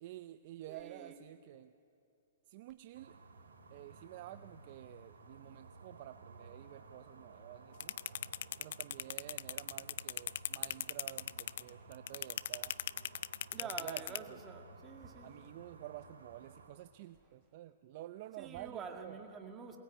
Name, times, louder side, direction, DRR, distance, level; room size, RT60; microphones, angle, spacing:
voice 1, 0.0-1.7 2.5-3.2 3.7-8.0 8.6-12.7 13.6-14.4 15.2-19.2, right 14 dB, 45° right, 11 dB, 0.5 m, -50 dB
voice 2, 0.7-1.2 13.5-15.4 18.4-19.8, right 5 dB, 20° right, 4 dB, 1.9 m, -47 dB
sound 1, 2.9-16.7, right 3 dB, 85° right, 3.4 m, -56 dB
sound 2, 7.8-14.2, left 11 dB, 60° left, 0.4 m, -37 dB
21.5 x 18.5 x 9.0 m, 2.7 s
hypercardioid pair, 145°, 0 cm